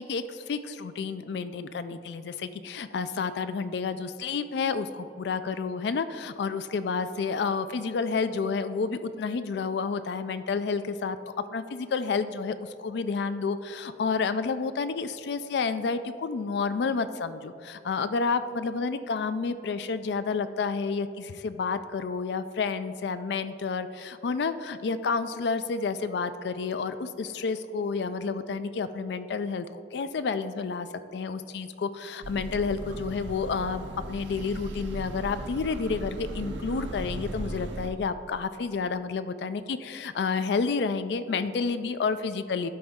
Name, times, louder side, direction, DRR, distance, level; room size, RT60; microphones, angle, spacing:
voice 1, 0.0-11.2 11.5-30.9 31.1-42.7, left 5 dB, 70° left, 12 dB, 0.4 m, -30 dB
sound 1, 32.2-37.9, right 2 dB, 80° right, 0.6 m, -37 dB
12.0 x 4.4 x 3.6 m, 2.7 s
head